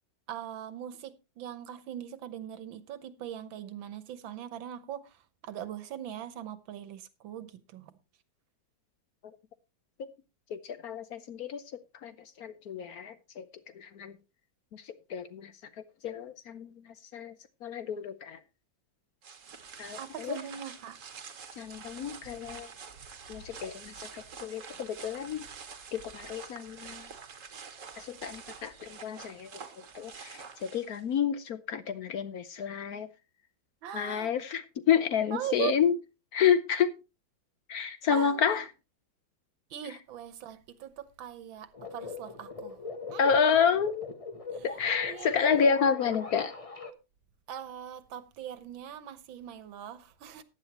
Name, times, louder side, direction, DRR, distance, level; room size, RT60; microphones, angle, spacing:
voice 1, 0.3-7.9 20.0-21.0 33.8-34.3 35.3-35.8 38.1-38.6 39.7-42.8 43.1-43.6 44.5-44.8 45.0-45.7 47.5-50.4, right 10 dB, 90° right, 1.8 m, -40 dB
voice 2, 10.5-13.5 13.7-14.2 14.7-17.4 17.6-18.4 19.8-20.4 21.6-22.7 23.3-25.5 25.9-27.1 28.0-33.1 33.9-36.0 36.3-37.0 37.7-38.6 43.2-44.1 44.6-46.5, left 7 dB, 65° left, 1.0 m, -30 dB
sound 1, 19.2-31.2, right 6 dB, 45° right, 1.4 m, -47 dB
sound 2, 41.7-46.9, left 4 dB, 30° left, 0.6 m, -41 dB
15.0 x 9.8 x 3.0 m
omnidirectional pair, 2.1 m